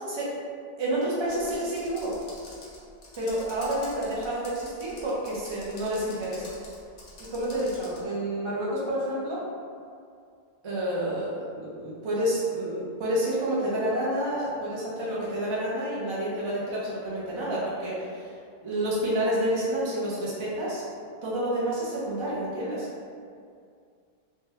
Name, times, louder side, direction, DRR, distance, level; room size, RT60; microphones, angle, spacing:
voice 1, 0.8-2.2 3.2-6.4 7.3-9.4 10.6-18.3 18.6-20.8 21.2-22.9, right 1 dB, 35° right, -7 dB, 0.5 m, -29 dB
Computer keyboard, 1.3-8.0, left 2 dB, 60° left, 0.8 m, -47 dB
2.7 x 2.2 x 3.4 m, 2.3 s
omnidirectional pair, 1.1 m